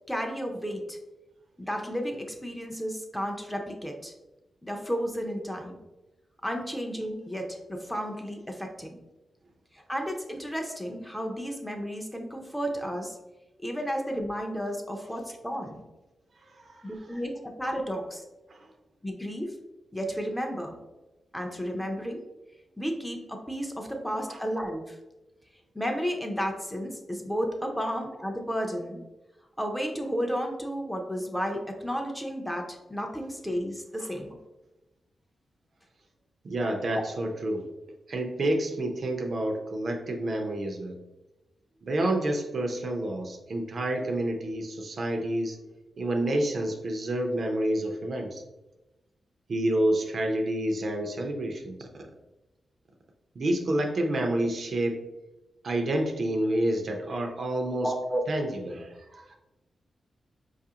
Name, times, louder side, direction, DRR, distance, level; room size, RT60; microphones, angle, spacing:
voice 1, 0.1-1.0 1.6-4.1 4.6-5.8 6.4-9.0 9.7-13.2 13.6-15.8 16.8-18.2 19.0-19.5 19.9-20.8 21.3-22.2 22.8-25.0 25.7-29.0 29.6-34.3 36.9-37.0 57.8-58.2, equal, 5° left, 2 dB, 0.4 m, -32 dB
voice 2, 16.5-16.9 18.5-18.7 24.3-24.4 36.4-37.7 38.1-41.0 41.8-45.6 46.0-48.4 49.5-52.0 53.4-55.0 55.6-57.9 58.3-59.4, right 1 dB, 50° right, 3 dB, 0.5 m, -29 dB
4.6 x 2.4 x 2.8 m, 1.0 s
wide cardioid pair, 125°, 0 cm